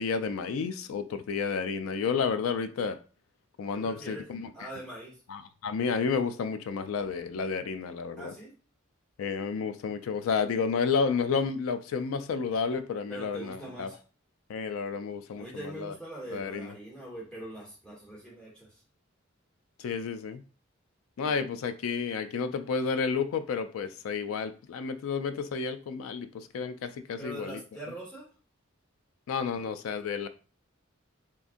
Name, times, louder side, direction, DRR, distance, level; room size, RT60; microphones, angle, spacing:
voice 1, 0.0-3.0 3.6-4.7 5.3-8.3 9.2-13.9 14.5-15.9 16.3-16.7 19.8-20.4 21.2-27.6 29.3-30.3, left 5 dB, 85° left, 0.4 m, -31 dB
voice 2, 3.7-4.3 4.5-5.2 8.2-8.5 13.1-14.0 15.3-18.8 21.2-21.4 27.2-28.3, right 1 dB, 5° left, 1.5 m, -42 dB
3.6 x 2.6 x 2.5 m
head